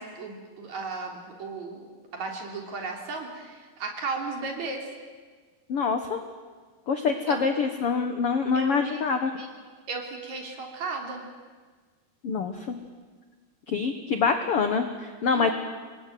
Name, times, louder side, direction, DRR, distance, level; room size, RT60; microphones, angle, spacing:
voice 1, 0.0-1.9 2.1-4.9 7.3-7.4 8.5-9.0 9.4-9.5 9.9-11.2 15.3-15.5, right 4 dB, 50° right, 2 dB, 4.5 m, -35 dB
voice 2, 5.7-6.2 6.9-9.3 12.2-12.8 13.7-15.5, left 5 dB, 60° left, 7 dB, 1.5 m, -25 dB
26.5 x 21.0 x 9.3 m, 1.5 s
omnidirectional pair, 4.4 m